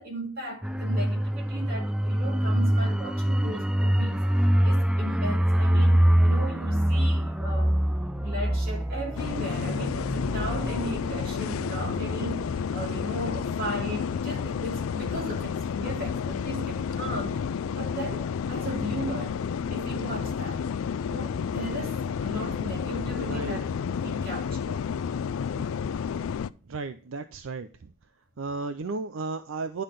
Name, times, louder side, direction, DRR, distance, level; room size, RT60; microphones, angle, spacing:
voice 1, 0.0-4.3 4.6-7.8 8.1-17.5 17.8-19.4 19.7-20.7 21.0-24.9, right 1 dB, 45° right, 2.5 m, -37 dB
sound 1, 0.6-13.0 13.3-13.5, equal, 5° right, 0.4 m, -25 dB
sound 2, 9.2-26.5, left 6 dB, 80° left, 0.4 m, -31 dB
voice 2, 23.2-23.6 25.5-25.7 26.7-27.9 28.4-29.8, right 3 dB, 75° right, 0.5 m, -34 dB
10.5 x 3.8 x 6.6 m
head